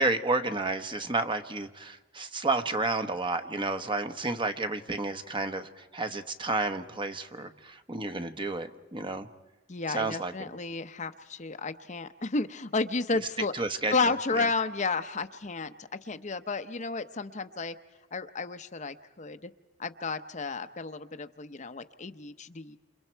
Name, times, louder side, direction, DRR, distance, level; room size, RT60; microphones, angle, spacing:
voice 1, 0.0-9.3 9.9-10.3 13.5-13.9 14.4-14.5, right 3 dB, 25° right, 8 dB, 1.1 m, -31 dB
voice 2, 9.7-13.6 13.9-17.8 18.1-19.5 19.8-22.8, left 3 dB, 40° left, 9 dB, 0.8 m, -32 dB
28.5 x 28.0 x 4.5 m, 1.2 s
head